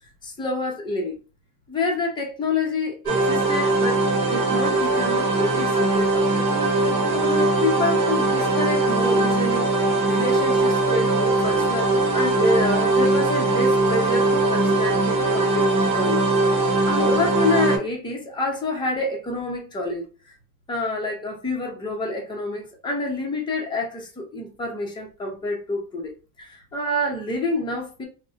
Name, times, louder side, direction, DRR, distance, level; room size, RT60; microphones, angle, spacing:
voice 1, 0.2-1.2 1.7-4.0 4.2-6.6 7.1-20.1 20.7-28.1, left 2 dB, 10° left, 0.6 m, -28 dB
sound 1, 3.1-17.8, right 2 dB, 45° right, 1.0 m, -20 dB
4.1 x 2.1 x 2.4 m
cardioid pair, 175°, 45 cm